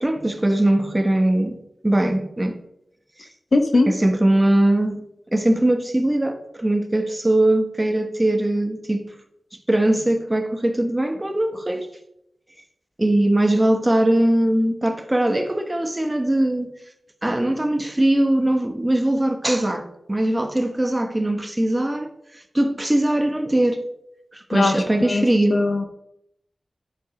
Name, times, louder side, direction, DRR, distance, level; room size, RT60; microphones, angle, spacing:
voice 1, 0.0-1.6 1.8-2.6 3.9-5.0 5.3-9.1 9.7-11.9 13.0-16.7 17.2-22.1 22.5-23.8 24.3-25.6, right 1 dB, 25° right, 1.1 m, -20 dB
voice 2, 3.5-3.9 24.5-25.9, left 2 dB, 70° left, 0.9 m, -20 dB
9.9 x 4.8 x 5.2 m
cardioid pair, 50°, 0 cm